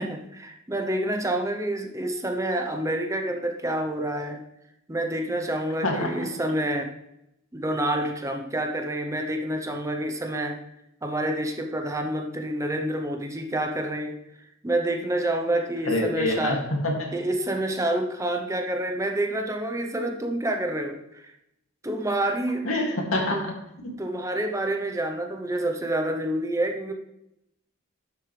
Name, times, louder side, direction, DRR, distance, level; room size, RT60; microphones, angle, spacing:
voice 1, 0.0-4.4 4.9-6.9 7.5-10.6 11.0-14.2 14.6-16.6 17.1-21.3 21.8-22.7 23.3-23.4 24.0-26.9, right 1 dB, 15° right, 4 dB, 0.9 m, -28 dB
voice 2, 5.8-6.3 15.8-17.1 22.6-23.6, left 1 dB, 75° left, 0 dB, 2.6 m, -26 dB
11.5 x 7.3 x 3.4 m, 0.82 s
head